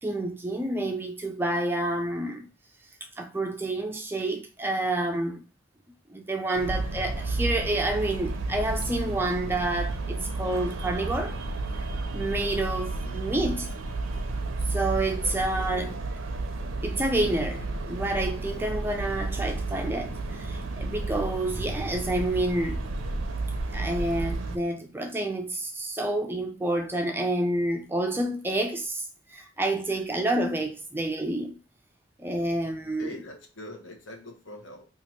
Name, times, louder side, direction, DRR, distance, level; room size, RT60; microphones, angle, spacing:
voice 1, 0.0-2.5 3.2-5.4 6.1-11.4 12.1-13.7 14.7-15.9 16.8-22.9 23.7-31.6 32.2-33.1, right 1 dB, 10° right, 0.3 m, -29 dB
sound 1, 6.5-24.6, right 2 dB, 85° right, 0.5 m, -32 dB
voice 2, 12.9-13.2 14.6-16.0 33.0-34.8, left 1 dB, 75° left, 1.0 m, -44 dB
2.8 x 2.5 x 4.2 m
head